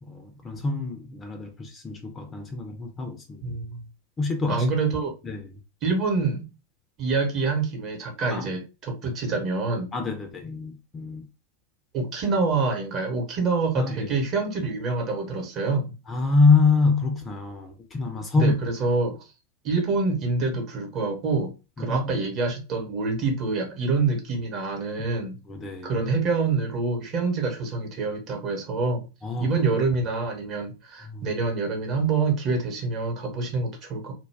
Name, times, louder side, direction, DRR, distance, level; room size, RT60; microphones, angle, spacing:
voice 1, 0.0-3.6 4.2-4.7 5.2-5.5 8.3-8.5 9.9-11.3 13.8-14.2 16.1-18.5 21.8-22.1 25.5-26.0 29.2-29.5 31.0-31.3, left 4 dB, 20° left, 0.5 m, -25 dB
voice 2, 3.4-3.8 4.5-5.1 5.8-6.5 7.0-9.9 11.9-15.9 18.4-19.2 19.6-21.5 21.8-25.4 25.8-29.0 29.4-34.1, right 4 dB, 35° right, 0.9 m, -26 dB
2.2 x 2.2 x 3.3 m
figure-of-eight pair, 90°, 0 cm